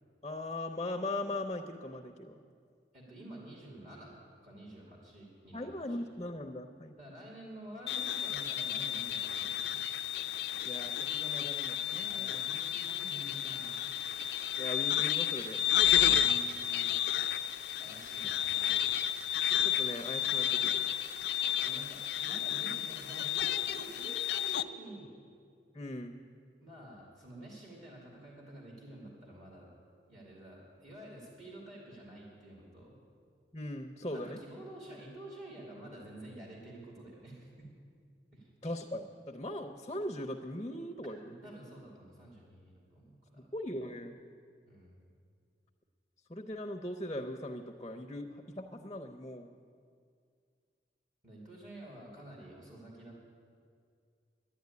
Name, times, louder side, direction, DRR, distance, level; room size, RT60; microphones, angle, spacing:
voice 1, 0.2-2.4 5.5-6.9 10.6-12.3 14.6-15.6 19.6-20.8 25.7-26.2 33.5-34.4 38.6-41.5 43.5-44.2 46.3-49.5, left 1 dB, 20° left, 3 dB, 0.6 m, -39 dB
voice 2, 2.9-4.2 4.4-6.0 7.0-9.9 11.8-13.9 16.0-17.0 17.8-18.8 21.5-25.1 26.6-29.7 30.1-33.0 34.1-37.7 38.3-38.5 41.2-43.5 44.7-45.0 51.2-53.2, right 1 dB, 40° right, -3 dB, 2.6 m, -49 dB
sound 1, 7.9-24.6, left 11 dB, 75° left, 0.4 m, -32 dB
11.0 x 11.0 x 9.4 m, 2.2 s
head